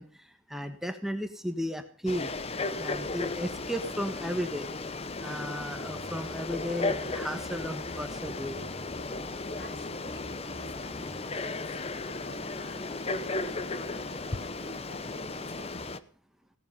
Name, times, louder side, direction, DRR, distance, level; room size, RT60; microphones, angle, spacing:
voice 1, 0.0-2.3 2.8-4.7 5.2-8.7, equal, ahead, 7 dB, 1.3 m, -35 dB
Frog, 2.1-16.0, left 3 dB, 30° left, 0.9 m, -35 dB
sound 1, 5.9-11.3, right 1 dB, 30° right, 1.2 m, -50 dB
voice 2, 9.5-15.8, equal, 80° left, 3 dB, 6.9 m, -50 dB
17.0 x 12.5 x 5.6 m, 0.41 s
head